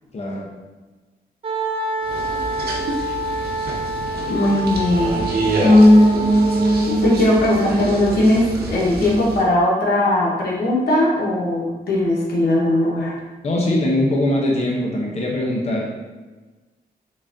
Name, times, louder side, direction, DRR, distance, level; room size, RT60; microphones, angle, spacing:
voice 1, 0.1-0.5 13.4-15.9, left 1 dB, 40° left, -3 dB, 0.7 m, -21 dB
Wind instrument woodwind instrument, 1.4-7.4, right 2 dB, 35° right, 0.5 m, -27 dB
sound 1, 2.0-9.4, right 2 dB, 75° right, 0.7 m, -28 dB
voice 2, 4.3-5.1 5.6-13.1, left 1 dB, 85° left, -4 dB, 1.1 m, -17 dB
3.9 x 3.5 x 2.6 m, 1.2 s
cardioid pair, 95°, 16 cm